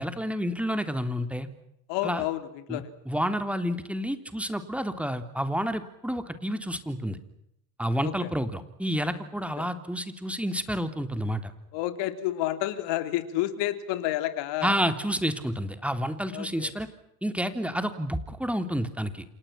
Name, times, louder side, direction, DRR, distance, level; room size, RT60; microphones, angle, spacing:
voice 1, 0.0-1.5 2.0-2.2 2.7-7.2 7.8-11.5 14.6-16.9 17.2-19.2, equal, 5° right, 8 dB, 3.4 m, -29 dB
voice 2, 1.9-2.9 8.0-8.3 9.6-9.7 11.7-14.7 16.3-16.7, left 14 dB, 65° left, 10 dB, 3.4 m, -30 dB
30.0 x 28.0 x 5.9 m, 0.77 s
hypercardioid pair, 70°, 47 cm